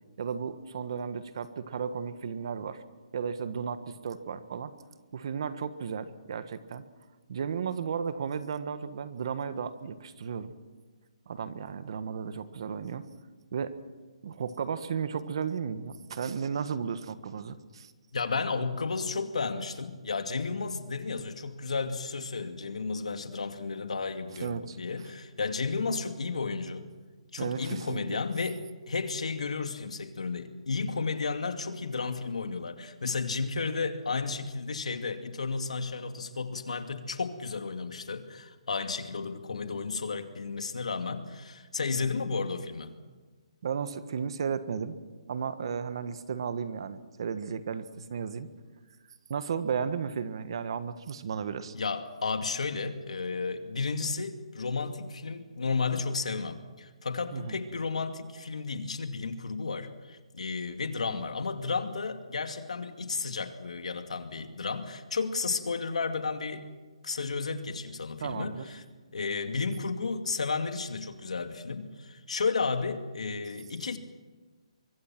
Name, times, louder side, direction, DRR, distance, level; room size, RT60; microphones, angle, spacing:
voice 1, 0.2-2.8 3.1-4.7 5.1-6.8 7.3-10.5 11.3-13.1 13.5-13.8 14.2-17.9 24.4-24.8 27.4-28.2 43.6-45.0 45.3-48.5 49.3-51.7 57.3-57.6 68.2-68.7, right 6 dB, 50° right, 12 dB, 1.4 m, -34 dB
voice 2, 18.1-26.9 27.3-42.9 51.7-66.6 67.0-68.8 69.1-74.0, left 4 dB, 85° left, 7 dB, 2.4 m, -33 dB
24.0 x 23.5 x 6.0 m, 1.3 s
hypercardioid pair, 170°, 4 cm